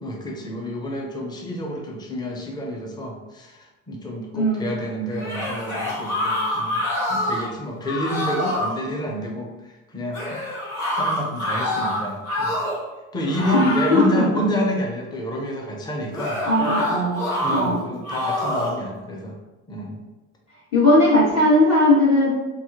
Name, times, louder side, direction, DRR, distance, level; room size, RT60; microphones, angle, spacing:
voice 1, 0.0-6.8 7.1-10.4 10.9-12.6 13.1-16.4 17.3-19.4 19.7-20.0, equal, 10° left, 0 dB, 0.6 m, -29 dB
voice 2, 4.3-4.8 13.4-14.4 16.4-17.2 17.5-17.8 20.7-22.3, left 1 dB, 40° left, -7 dB, 1.3 m, -18 dB
sound 1, 5.1-7.5 7.8-8.8 10.1-12.9 13.3-14.2 16.1-17.6 18.0-18.8, left 1 dB, 60° left, 1.3 m, -26 dB
2.8 x 2.3 x 3.5 m, 1.0 s
hypercardioid pair, 60°, 40 cm